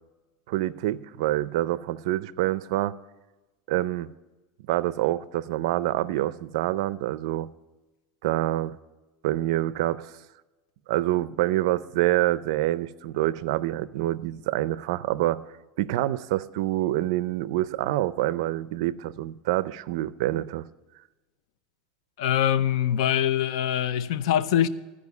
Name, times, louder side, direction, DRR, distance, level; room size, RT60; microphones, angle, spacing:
voice 1, 0.5-2.9 3.7-4.1 4.7-7.5 8.2-8.8 9.2-10.1 10.9-15.4 15.8-20.6, right 15 dB, 75° right, 0.4 m, -26 dB
voice 2, 22.2-24.7, left 10 dB, 80° left, 0.5 m, -23 dB
13.0 x 5.0 x 8.0 m
supercardioid pair, 155°, 3 cm